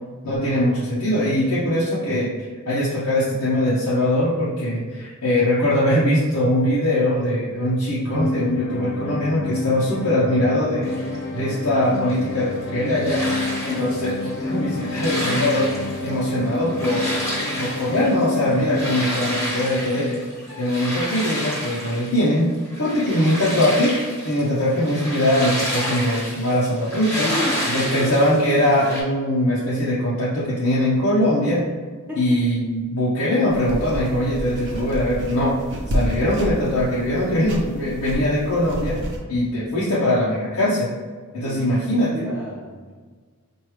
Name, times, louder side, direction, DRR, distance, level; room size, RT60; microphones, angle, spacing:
voice 1, 0.2-13.2 13.6-17.1 17.6-20.2 20.6-22.5 22.8-27.3 27.7-31.6 32.2-35.6 35.9-39.0 39.3-40.9 41.3-42.1, left 1 dB, 75° left, -8 dB, 0.8 m, -21 dB
sound 1, 8.1-20.1, left 3 dB, 40° left, 0.6 m, -29 dB
sound 2, 10.8-29.0, equal, 15° left, 1.2 m, -30 dB
voice 2, 27.2-28.2 32.1-32.4 41.3-42.9, left 1 dB, 10° right, -6 dB, 1.0 m, -32 dB
sound 3, 33.5-39.2, equal, 55° right, 0.8 m, -30 dB
4.6 x 2.6 x 3.2 m, 1.5 s
head